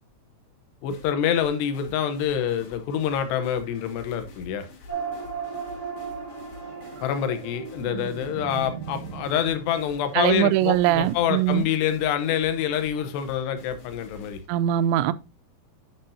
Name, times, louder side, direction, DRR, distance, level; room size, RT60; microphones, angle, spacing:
voice 1, 0.8-4.7 7.0-14.4, left 9 dB, 80° left, 3.0 m, -26 dB
sound 1, 0.9-14.5, left 3 dB, 60° left, 3.0 m, -47 dB
sound 2, 4.9-9.6, right 5 dB, 10° left, 0.9 m, -36 dB
sound 3, 6.6-11.1 13.5-13.7, right 7 dB, 70° right, 1.8 m, -40 dB
voice 2, 10.1-11.7 14.5-15.1, right 13 dB, 90° right, 2.8 m, -21 dB
10.5 x 5.9 x 2.7 m
omnidirectional pair, 5.0 m